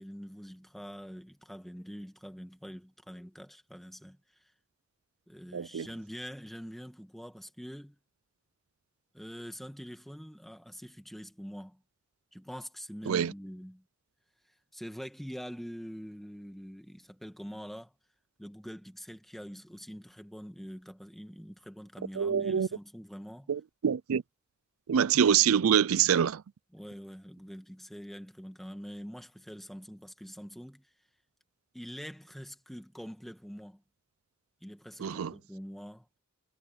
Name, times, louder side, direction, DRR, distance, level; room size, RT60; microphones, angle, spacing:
voice 1, 0.0-4.2 5.3-8.0 9.1-11.8 12.3-13.8 14.7-17.9 18.4-23.5 26.7-30.9 31.7-33.8 34.6-36.1, equal, ahead, 1.9 m, -45 dB
voice 2, 5.5-5.9 13.1-13.3 22.2-22.7 23.5-24.2 24.9-26.4 35.0-35.3, right 8 dB, 80° right, 0.4 m, -25 dB
head